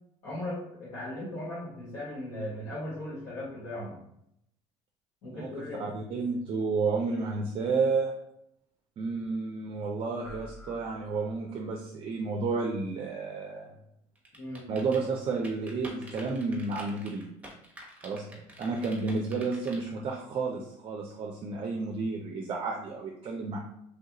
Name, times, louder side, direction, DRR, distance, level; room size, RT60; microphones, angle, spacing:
voice 1, 0.2-4.0 5.2-5.9 14.4-14.7, left 1 dB, 70° left, -10 dB, 1.3 m, -37 dB
voice 2, 5.3-8.1 9.0-13.7 14.7-17.3 18.0-18.3 18.6-23.6, right 4 dB, 40° right, 0 dB, 0.4 m, -31 dB
sound 1, 10.2-11.8, left 2 dB, 10° left, 0.6 m, -50 dB
sound 2, 14.1-19.8, right 1 dB, 10° right, 0.9 m, -46 dB
3.2 x 2.4 x 2.8 m, 0.77 s
supercardioid pair, 95°, 14 cm